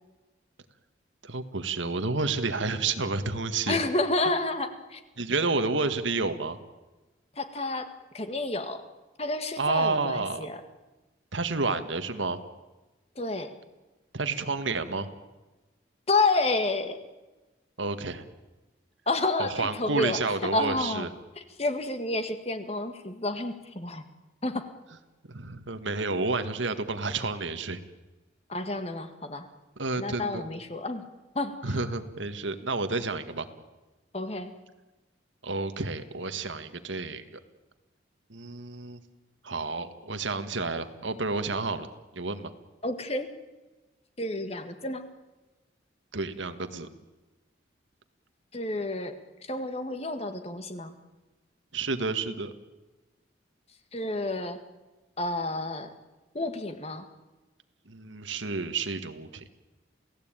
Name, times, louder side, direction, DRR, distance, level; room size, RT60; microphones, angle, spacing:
voice 1, 1.2-3.8 5.2-6.6 9.6-10.5 11.3-12.4 14.1-15.1 17.8-18.2 19.4-21.1 25.3-27.8 29.8-30.4 31.6-33.5 35.4-37.4 38.3-39.0 39.4-41.9 42.1-42.5 46.1-46.9 51.7-52.5 57.9-59.4, right 3 dB, 80° right, 9 dB, 1.8 m, -30 dB
voice 2, 3.7-5.0 7.4-8.8 9.2-10.6 13.2-13.5 16.1-17.0 19.1-21.1 21.4-24.0 24.4-24.7 28.5-29.5 30.0-31.0 31.4-31.7 34.1-34.5 42.8-43.3 44.2-45.1 48.5-49.2 49.4-50.9 53.9-54.6 55.2-55.9 56.3-57.1, left 2 dB, 30° left, 8 dB, 1.8 m, -30 dB
28.5 x 17.0 x 9.1 m, 1.1 s
head